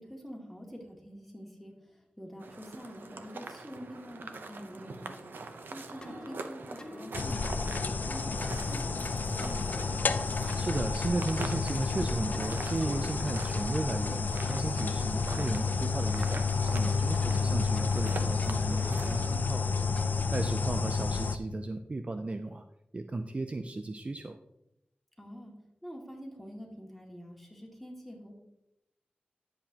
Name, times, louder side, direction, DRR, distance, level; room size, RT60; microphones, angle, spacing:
voice 1, 0.0-1.7 2.2-5.3 5.7-10.1 17.2-17.6 25.2-25.5 25.8-28.3, equal, ahead, -2 dB, 2.3 m, -46 dB
sound 1, 2.4-19.3, right 3 dB, 85° right, 0.8 m, -44 dB
sound 2, 6.0-6.4 6.8-7.0 7.3-8.0 8.4-8.7 9.4-9.9 10.5-10.8 11.3-11.6 11.8-12.5 12.8-13.5 13.7-14.6 15.5-15.7 16.2-16.4 16.8-17.5 17.8-18.1 18.4-20.2, left 1 dB, 25° left, 1.0 m, -47 dB
sound 3, 7.1-21.4, left 4 dB, 60° left, 0.5 m, -30 dB
voice 2, 10.6-19.9 20.3-22.6 22.9-24.4, right 2 dB, 40° right, 7 dB, 0.5 m, -35 dB
11.0 x 7.8 x 2.9 m, 0.84 s
wide cardioid pair, 75°, 3 cm